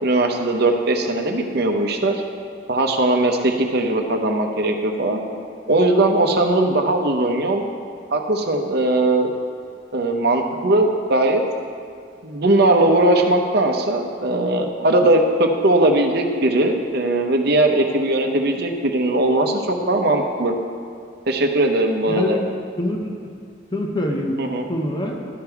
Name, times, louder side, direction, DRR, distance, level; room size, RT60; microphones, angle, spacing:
voice 1, 0.0-2.2 2.7-5.2 5.7-7.6 8.1-9.3 9.9-11.4 12.2-20.5 21.3-22.4 24.4-24.7, right 2 dB, 55° right, 3 dB, 0.8 m, -19 dB
voice 2, 22.1-22.4 22.8-23.3 23.7-24.4 24.7-25.2, left 1 dB, 25° left, 1 dB, 0.7 m, -24 dB
12.0 x 5.3 x 4.6 m, 2.2 s
head